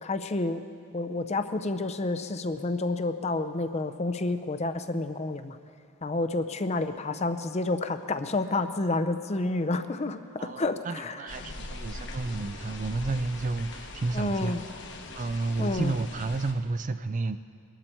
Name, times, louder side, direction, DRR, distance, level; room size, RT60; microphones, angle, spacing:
voice 1, 0.0-0.6 0.9-5.6 6.0-11.2 14.1-14.6 15.6-15.9, left 2 dB, 30° left, 10 dB, 0.5 m, -29 dB
voice 2, 10.4-17.4, right 3 dB, 35° right, 12 dB, 0.4 m, -31 dB
sound 1, 11.3-16.5, left 2 dB, 50° left, 1.1 m, -41 dB
22.0 x 12.0 x 4.5 m, 2.4 s
head